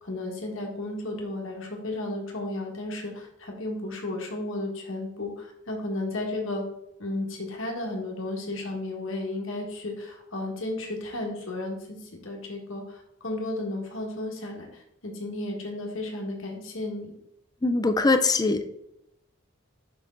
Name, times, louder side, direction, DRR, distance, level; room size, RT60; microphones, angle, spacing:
voice 1, 0.0-6.6 7.0-17.1, left 2 dB, 65° left, 0 dB, 1.7 m, -33 dB
voice 2, 17.6-18.7, left 3 dB, 20° left, 9 dB, 0.4 m, -22 dB
6.3 x 5.6 x 3.9 m, 0.81 s
head